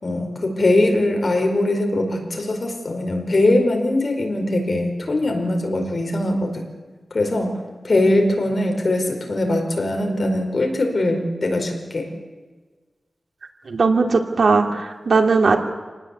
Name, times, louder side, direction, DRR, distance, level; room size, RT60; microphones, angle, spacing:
voice 1, 0.0-6.7 7.1-7.5 7.8-12.1, left 1 dB, 50° left, 3 dB, 4.8 m, -21 dB
voice 2, 13.7-15.6, right 4 dB, 80° right, 4 dB, 2.7 m, -18 dB
28.0 x 19.0 x 8.3 m, 1.4 s
wide cardioid pair, 105°, 0 cm